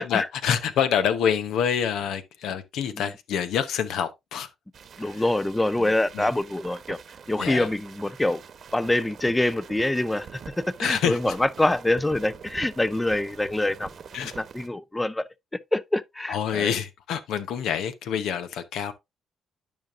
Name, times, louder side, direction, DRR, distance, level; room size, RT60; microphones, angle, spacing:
voice 1, 0.0-4.5 5.0-5.3 5.8-6.3 7.4-7.7 10.8-11.3 14.1-14.3 16.3-18.9, left 8 dB, 80° left, 0.9 m, -27 dB
sound 1, 4.7-14.7, right 6 dB, 55° right, 1.1 m, -45 dB
voice 2, 5.0-7.0 7.3-8.4 8.7-13.9 14.4-15.2 15.7-16.7, left 1 dB, 10° left, 0.5 m, -25 dB
12.0 x 5.2 x 2.5 m
cardioid pair, 90°, 0 cm